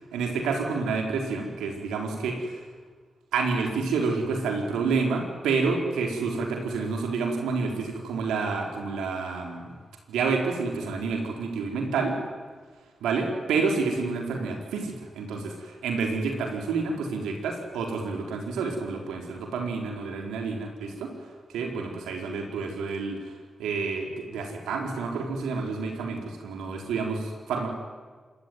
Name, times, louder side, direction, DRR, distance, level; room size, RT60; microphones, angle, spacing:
voice 1, 0.1-2.6 3.3-9.7 10.1-12.2 13.0-21.1 21.5-23.3 23.6-27.7, right 4 dB, 90° right, 2 dB, 4.3 m, -29 dB
26.0 x 21.5 x 9.6 m, 1.5 s
supercardioid pair, 45°, 0 cm